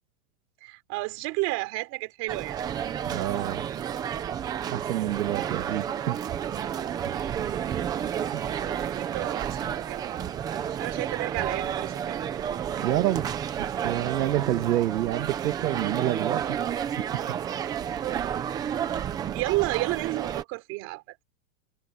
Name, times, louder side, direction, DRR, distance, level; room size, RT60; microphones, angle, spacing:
voice 1, 0.6-2.6 8.8-10.1 10.8-12.2 19.3-21.2, right 22 dB, 35° right, 3.6 m, -31 dB
sound 1, 2.3-20.4, right 9 dB, 10° right, 0.5 m, -31 dB
voice 2, 3.1-3.6 4.7-6.2 7.0-7.2 8.3-8.4 12.8-13.3 13.6-16.6 16.9-17.3, right 13 dB, 85° right, 1.7 m, -28 dB
supercardioid pair, 165°, 45 cm